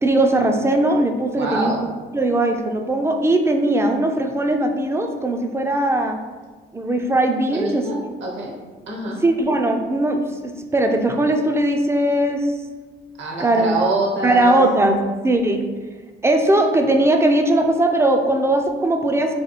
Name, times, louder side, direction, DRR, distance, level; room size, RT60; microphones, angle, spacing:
voice 1, 0.0-1.7 2.1-6.2 6.7-7.9 9.1-12.5 13.4-13.7 14.2-15.0 15.2-15.6 16.2-19.3, right 1 dB, 15° right, 5 dB, 0.4 m, -19 dB
voice 2, 1.3-1.8 7.5-8.5 8.9-9.2 13.2-14.6, right 2 dB, 65° right, -1 dB, 1.0 m, -25 dB
3.5 x 2.3 x 3.9 m, 1.4 s
cardioid pair, 90°, 20 cm